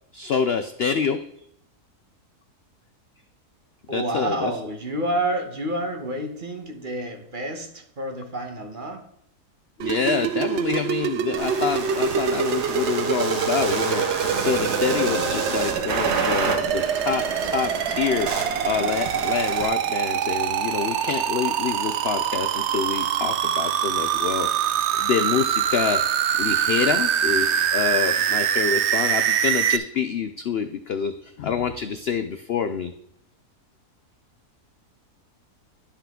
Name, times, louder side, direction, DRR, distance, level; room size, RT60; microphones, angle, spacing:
voice 1, 0.1-1.2 3.9-4.5 9.8-17.3 17.5-24.7 25.0-26.0 26.4-32.9, left 6 dB, 90° left, 9 dB, 0.5 m, -27 dB
voice 2, 3.9-9.1, right 1 dB, 35° right, 5 dB, 1.1 m, -29 dB
sound 1, 9.8-29.8, right 9 dB, 65° right, 0.7 m, -24 dB
sound 2, 11.4-19.7, right 4 dB, 85° right, 2.0 m, -29 dB
11.5 x 5.7 x 3.6 m, 0.75 s
omnidirectional pair, 1.7 m